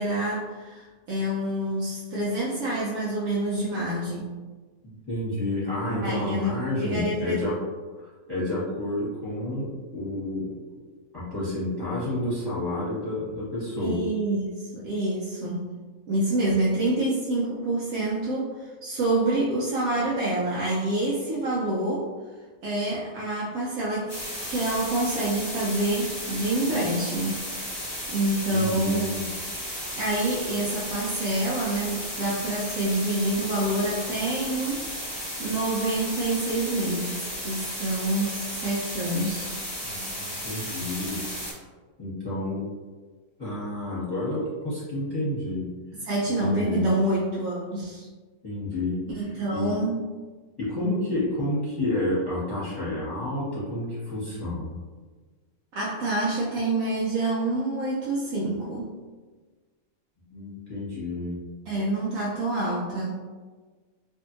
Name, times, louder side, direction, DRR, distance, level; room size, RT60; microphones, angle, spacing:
voice 1, 0.0-4.3 6.0-7.4 13.8-15.7 16.1-22.1 22.6-24.1 24.5-27.4 28.1-29.1 29.9-39.5 46.0-48.1 49.1-50.0 55.8-58.9 61.7-63.1, right 1 dB, 75° right, -6 dB, 1.0 m, -27 dB
voice 2, 4.8-7.5 8.0-10.5 11.1-14.1 28.5-29.3 39.8-41.2 42.0-42.6 43.4-45.7 46.4-46.9 48.4-49.8 50.6-54.8 60.3-61.4, left 1 dB, 20° left, -12 dB, 1.0 m, -30 dB
sound 1, 24.1-41.5, equal, 20° right, 1.0 m, -34 dB
2.6 x 2.6 x 2.5 m, 1.4 s
omnidirectional pair, 1.5 m